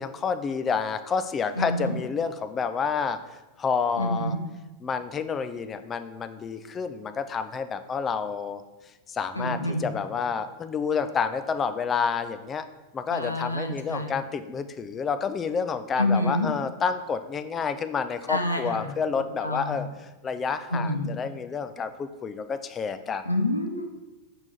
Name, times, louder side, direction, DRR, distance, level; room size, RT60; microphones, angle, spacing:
voice 1, 0.0-3.2 3.6-4.3 4.8-8.6 9.1-12.6 12.9-19.9 20.2-23.2, left 6 dB, 20° left, 10 dB, 0.4 m, -29 dB
voice 2, 1.6-1.9 4.0-4.4 9.3-9.9 13.1-14.1 16.0-16.5 18.3-18.9 19.4-19.8 20.7-21.1 23.3-23.8, left 1 dB, 85° left, 4 dB, 0.6 m, -27 dB
5.6 x 4.4 x 4.2 m, 1.1 s
figure-of-eight pair, 90°, 0 cm